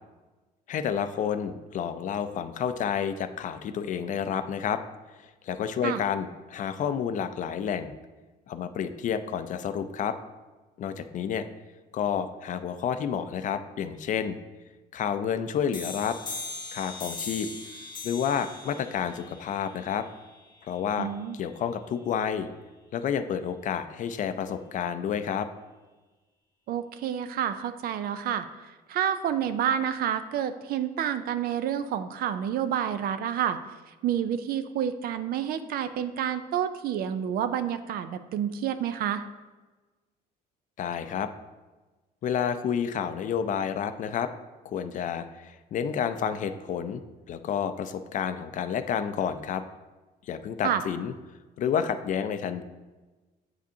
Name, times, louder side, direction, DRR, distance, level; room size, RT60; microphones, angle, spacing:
voice 1, 0.7-4.8 5.4-7.9 8.5-10.2 10.8-11.4 11.9-14.4 14.9-16.2 16.7-17.5 18.0-20.1 20.6-21.1 21.3-22.5 22.9-25.5 40.8-41.3 42.2-44.3 44.6-47.0 47.3-49.6 50.3-51.1 51.6-52.6, left 8 dB, 50° left, 10 dB, 0.4 m, -30 dB
sound 1, 15.7-21.1, left 3 dB, 30° left, 0.9 m, -40 dB
voice 2, 21.0-21.4 26.7-28.5 28.9-33.6 34.0-39.2 50.6-50.8, right 9 dB, 65° right, 11 dB, 0.5 m, -29 dB
7.9 x 5.0 x 2.7 m, 1.2 s
cardioid pair, 110°, 17 cm